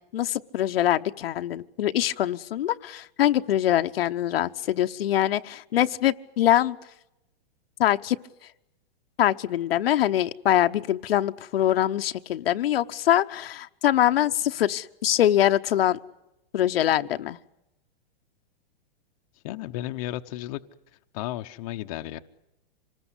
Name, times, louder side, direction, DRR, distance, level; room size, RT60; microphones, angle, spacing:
voice 1, 0.1-6.8 7.8-8.2 9.2-16.0 16.5-17.4, left 12 dB, 75° left, 8 dB, 1.0 m, -23 dB
voice 2, 19.4-20.6 21.1-22.2, left 15 dB, 35° left, 7 dB, 0.9 m, -33 dB
26.5 x 20.0 x 8.2 m, 0.90 s
supercardioid pair, 165°, 29 cm